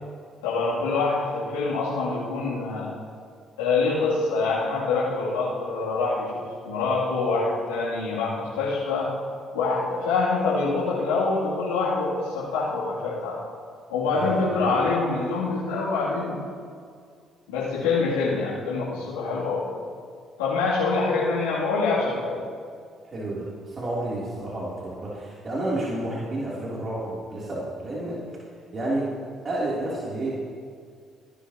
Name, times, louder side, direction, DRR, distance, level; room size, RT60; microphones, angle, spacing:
voice 1, 0.4-2.9 3.6-9.1 9.5-13.3 13.9-16.4 17.5-19.7 20.4-22.4, left 3 dB, 90° left, -10 dB, 2.8 m, -25 dB
voice 2, 14.1-14.8 23.0-28.2 28.7-29.1 29.4-30.3, right 1 dB, 40° right, -7 dB, 3.1 m, -30 dB
19.0 x 11.5 x 2.9 m, 2.2 s
hypercardioid pair, 55°, 0 cm